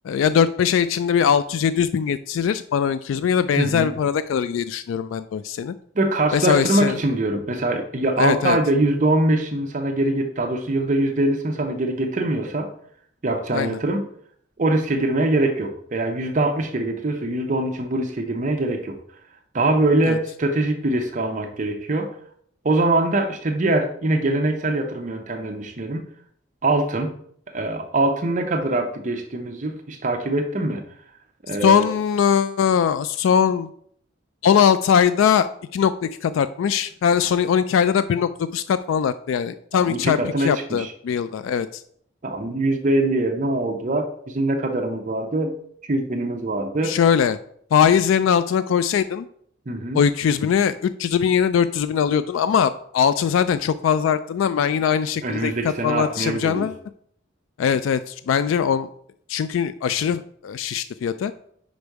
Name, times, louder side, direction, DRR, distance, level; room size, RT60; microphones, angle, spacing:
voice 1, 0.0-5.7 6.3-7.0 8.2-8.6 13.5-13.8 20.1-20.2 31.6-33.7 34.4-35.5 35.7-41.8 46.8-47.4 47.7-49.3 49.9-56.8 57.6-58.9 59.3-61.3, left 7 dB, 85° left, 14 dB, 0.3 m, -21 dB
voice 2, 3.6-3.9 6.0-12.7 13.2-14.0 14.6-19.0 19.5-22.1 22.6-26.1 26.6-27.1 27.5-30.8 31.4-31.9 39.9-40.9 42.2-45.5 45.9-47.0 49.7-50.0 55.2-56.7, right 2 dB, 40° right, 5 dB, 0.6 m, -23 dB
5.2 x 5.1 x 4.6 m, 0.64 s
head